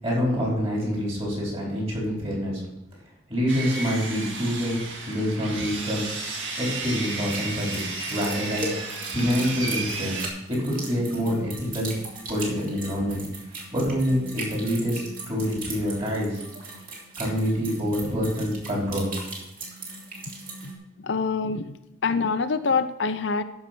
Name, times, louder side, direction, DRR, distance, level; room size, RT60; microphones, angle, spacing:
voice 1, 0.0-2.6 3.3-6.1 6.6-7.8 8.1-8.7 9.1-11.9 12.3-13.2 13.7-16.4 17.2-19.1, equal, 30° right, -3 dB, 4.5 m, -26 dB
Sawing, 3.5-10.3, right 3 dB, 80° right, 2.1 m, -33 dB
sound 1, 7.3-20.7, right 2 dB, 45° right, 2.7 m, -38 dB
voice 2, 21.0-21.8 22.0-23.4, left 4 dB, 70° left, 10 dB, 0.6 m, -25 dB
13.0 x 5.7 x 6.0 m, 0.91 s
head